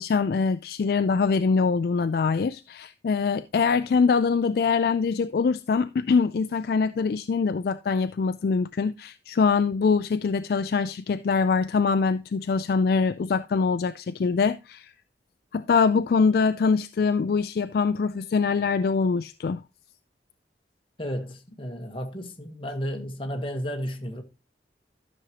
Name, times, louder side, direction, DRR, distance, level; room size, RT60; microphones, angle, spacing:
voice 1, 0.0-14.9 15.5-19.6, left 5 dB, 55° left, 0.3 m, -23 dB
voice 2, 21.0-24.2, equal, 30° left, 1.3 m, -33 dB
13.0 x 6.3 x 2.9 m
head